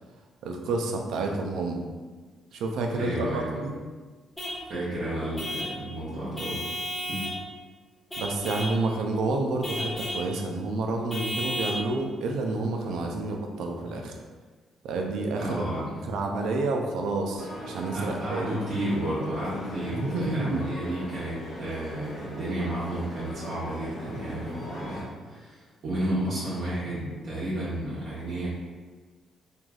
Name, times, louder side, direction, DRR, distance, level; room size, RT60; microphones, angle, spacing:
voice 1, 0.4-1.8 2.5-3.7 8.2-14.1 14.8-15.6 16.0-18.5 19.9-20.6, right 2 dB, 80° right, 2 dB, 0.4 m, -29 dB
voice 2, 3.0-3.6 4.7-6.6 7.1-7.2 15.4-16.1 17.9-28.5, right 1 dB, 60° right, -10 dB, 0.9 m, -32 dB
Vehicle horn car horn honking / Truck, 4.4-4.6 5.4-5.8 6.4-7.4 8.1-8.8 9.6-10.2 11.1-11.8, left 1 dB, 10° left, 1.1 m, -33 dB
sound 1, 17.4-25.0, equal, 85° left, 1.1 m, -40 dB
3.1 x 2.5 x 2.3 m, 1.4 s
cardioid pair, 90°, 0 cm